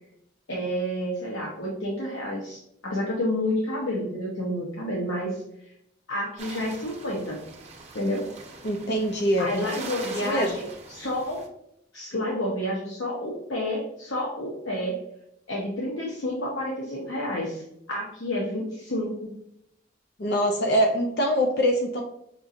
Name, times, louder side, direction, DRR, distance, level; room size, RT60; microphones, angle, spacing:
voice 1, 0.5-5.7 6.1-7.4 7.9-8.3 9.4-11.4 11.9-15.0 15.5-19.3, left 1 dB, 80° left, -4 dB, 0.9 m, -30 dB
sound 1, 6.4-11.5, right 3 dB, 35° right, 0.7 m, -42 dB
voice 2, 8.6-9.6 10.0-10.5 20.2-22.0, equal, 55° left, 2 dB, 0.5 m, -24 dB
5.4 x 2.7 x 2.4 m, 0.76 s
head